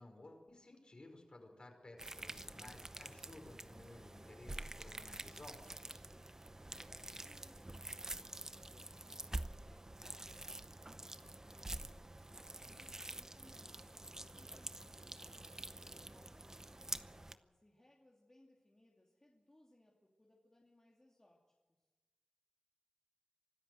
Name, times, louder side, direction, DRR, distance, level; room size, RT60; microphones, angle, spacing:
voice 1, 0.0-5.6 5.8-6.1, left 2 dB, 45° left, 3 dB, 5.3 m, -56 dB
sound 1, 2.0-17.3, right 1 dB, 25° right, 0.7 m, -48 dB
voice 2, 6.7-21.9, left 1 dB, 25° left, -2 dB, 2.8 m, -69 dB
25.0 x 13.5 x 7.9 m, 1.2 s
wide cardioid pair, 65°, 2 cm